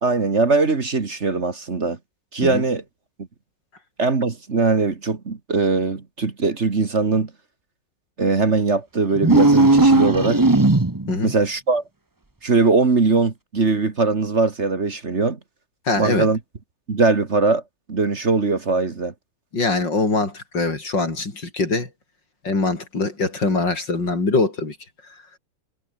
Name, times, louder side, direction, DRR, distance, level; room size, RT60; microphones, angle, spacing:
voice 1, 0.0-2.0 2.3-2.8 4.0-7.3 8.2-10.4 11.2-11.8 12.4-15.4 16.0-16.4 16.9-17.6 17.9-19.1, right 3 dB, 40° right, 2.1 m, -20 dB
sound 1, 9.1-11.2, right 2 dB, 15° right, 1.0 m, -16 dB
voice 2, 15.9-16.3 19.5-21.9 22.4-24.8, left 3 dB, 80° left, 5.8 m, -23 dB
omnidirectional pair, 1.9 m